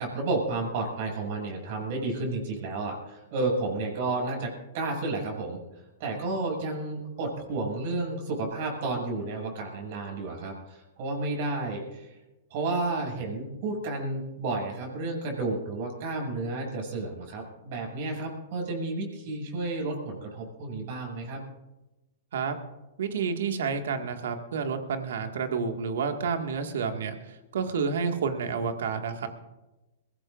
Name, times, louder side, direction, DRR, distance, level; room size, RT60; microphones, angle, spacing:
voice 1, 0.0-5.6 6.0-12.2 12.5-21.4, right 2 dB, 55° right, 1 dB, 6.8 m, -31 dB
voice 2, 23.0-29.3, right 5 dB, 70° right, 5 dB, 1.9 m, -30 dB
22.5 x 17.0 x 2.6 m, 1.0 s
hypercardioid pair, 115°, 0 cm